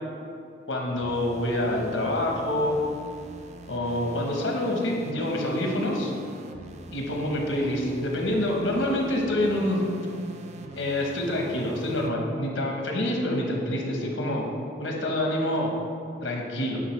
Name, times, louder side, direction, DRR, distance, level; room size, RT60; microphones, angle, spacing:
voice 1, 0.7-2.8 3.7-6.1 6.9-9.8 10.7-14.5 14.8-15.7 16.2-16.8, left 1 dB, 85° left, 0 dB, 1.1 m, -27 dB
sound 1, 1.0-12.1, right 1 dB, 35° right, 0.3 m, -43 dB
8.8 x 4.1 x 3.2 m, 2.5 s
head